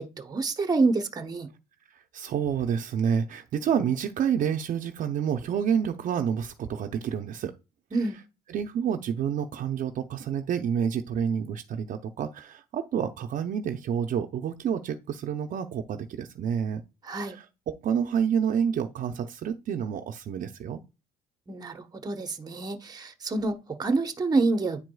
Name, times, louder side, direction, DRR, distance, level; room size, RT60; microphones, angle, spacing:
voice 1, 0.0-1.5 7.9-8.2 17.0-17.4 21.5-24.8, right 3 dB, 25° right, 0.9 m, -27 dB
voice 2, 1.9-7.5 8.5-16.8 17.1-20.8, right 8 dB, 50° right, 0.6 m, -29 dB
9.7 x 4.7 x 2.2 m
cardioid pair, 110°, 17 cm